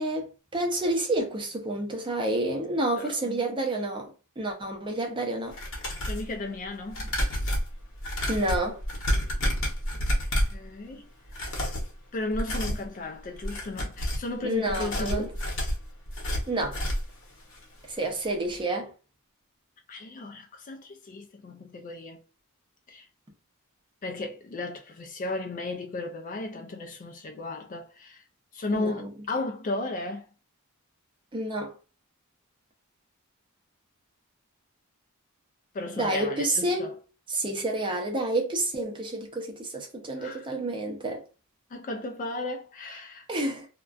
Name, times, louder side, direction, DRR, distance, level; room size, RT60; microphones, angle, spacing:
voice 1, 0.0-5.6 8.3-8.8 14.4-15.3 16.5-16.8 17.9-18.9 28.7-29.1 31.3-31.7 36.0-36.9 37.3-41.2 43.3-43.7, right 1 dB, 20° right, 0.6 m, -29 dB
voice 2, 3.0-3.4 6.0-7.1 10.3-11.1 12.1-15.4 19.9-22.2 22.9-23.1 24.0-28.2 28.5-30.3 35.7-36.9 40.2-40.5 41.7-43.3, left 2 dB, 35° left, 0.3 m, -35 dB
sound 1, 5.5-6.3 6.9-10.6 11.3-11.9 12.3-12.9 13.3-14.3 14.7-17.2 17.5-17.6 18.0-18.1, equal, 60° left, 0.9 m, -29 dB
2.4 x 2.2 x 2.3 m
head